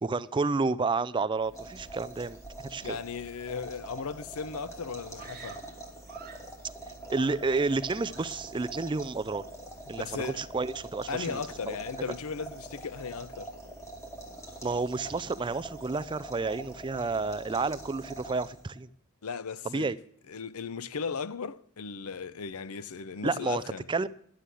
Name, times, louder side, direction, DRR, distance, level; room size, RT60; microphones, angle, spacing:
voice 1, 0.0-2.4 2.6-3.0 7.1-9.4 9.9-11.8 14.6-18.9 19.6-20.0 23.2-23.6 23.9-24.1, right 3 dB, 20° right, 0.4 m, -30 dB
sound 1, 1.4-18.8, right 2 dB, 15° left, 2.7 m, -44 dB
voice 2, 2.8-5.6 9.9-10.5 11.1-13.5 19.2-19.9 20.3-23.9, left 5 dB, 80° left, 0.6 m, -36 dB
Screaming, 5.2-6.6 7.1-7.8 8.1-8.5, right 7 dB, 45° right, 1.2 m, -50 dB
11.5 x 7.6 x 8.3 m
head